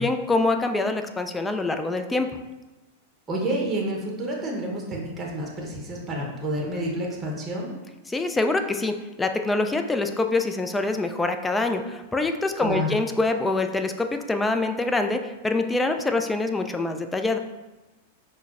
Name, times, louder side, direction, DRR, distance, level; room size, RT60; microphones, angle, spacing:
voice 1, 0.0-2.3 8.1-17.4, left 2 dB, 10° left, 6 dB, 0.3 m, -25 dB
voice 2, 3.3-7.7 12.6-13.0, right 1 dB, 20° right, -2 dB, 0.8 m, -29 dB
5.6 x 2.0 x 2.4 m, 1.1 s
hypercardioid pair, 100°, 0 cm